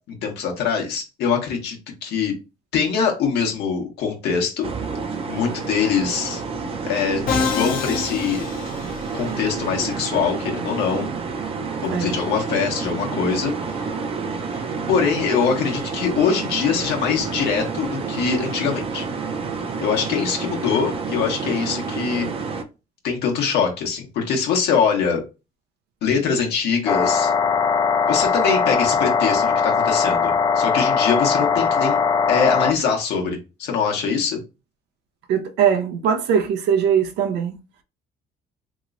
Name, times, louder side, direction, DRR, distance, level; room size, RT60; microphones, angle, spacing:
voice 1, 0.1-1.8 2.0-2.3 2.7-4.7 5.2-6.4 6.9-8.5 9.1-11.1 11.8-13.5 14.5-14.6 14.9-19.1 19.8-22.3 23.0-25.2 26.0-27.3 28.1-32.0 32.3-34.4, left 6 dB, 80° left, 1.0 m, -23 dB
sound 1, 4.6-22.6, right 4 dB, 35° right, 0.5 m, -29 dB
Musical instrument, 7.3-9.4, left 5 dB, 60° left, 0.6 m, -26 dB
sound 2, 26.9-32.7, left 5 dB, 25° left, 0.3 m, -20 dB
voice 2, 35.3-37.6, right 8 dB, 80° right, 0.6 m, -20 dB
3.0 x 2.9 x 2.5 m
cardioid pair, 110°, 17 cm